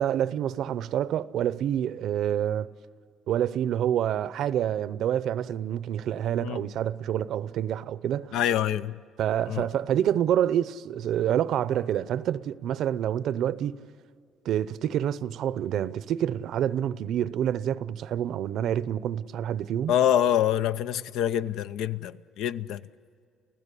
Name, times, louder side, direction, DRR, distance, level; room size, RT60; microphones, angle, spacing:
voice 1, 0.0-2.7 3.3-8.4 9.2-13.8 14.4-19.9, right 10 dB, 65° right, 0.7 m, -27 dB
voice 2, 8.3-8.9 9.5-9.7 19.9-22.8, left 10 dB, 80° left, 0.6 m, -25 dB
30.0 x 15.5 x 8.4 m
cardioid pair, 120°, 0 cm